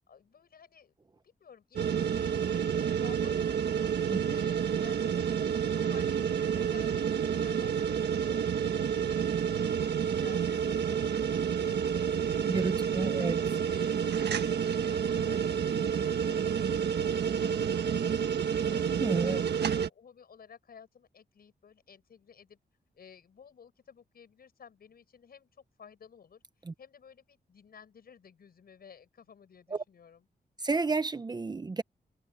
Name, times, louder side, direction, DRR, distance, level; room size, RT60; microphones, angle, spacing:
voice 1, 0.1-0.9 1.2-3.9 4.3-11.1 11.4-13.3 13.7-18.8 19.2-22.6 22.9-26.4 26.8-30.3, left 7 dB, 65° left, 6.9 m, -55 dB
sound 1, 1.8-19.9, right 8 dB, 85° right, 1.4 m, -29 dB
voice 2, 12.5-13.4 19.0-19.4 26.7-26.8 29.7-29.8 30.6-31.8, right 3 dB, 25° right, 0.7 m, -31 dB
wide cardioid pair, 150°, 17 cm